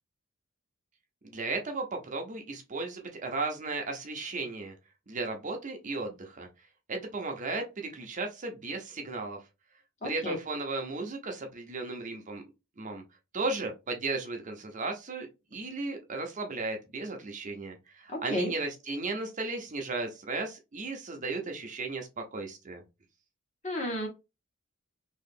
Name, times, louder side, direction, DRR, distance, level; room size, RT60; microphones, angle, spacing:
voice 1, 1.2-4.7 5.1-6.5 6.9-9.4 10.0-12.4 12.8-13.0 13.3-22.8, right 3 dB, 35° right, 3 dB, 0.7 m, -35 dB
voice 2, 10.0-10.4 18.1-18.5 23.6-24.1, left 1 dB, 35° left, 1 dB, 1.3 m, -32 dB
3.0 x 2.8 x 3.6 m, 0.26 s
head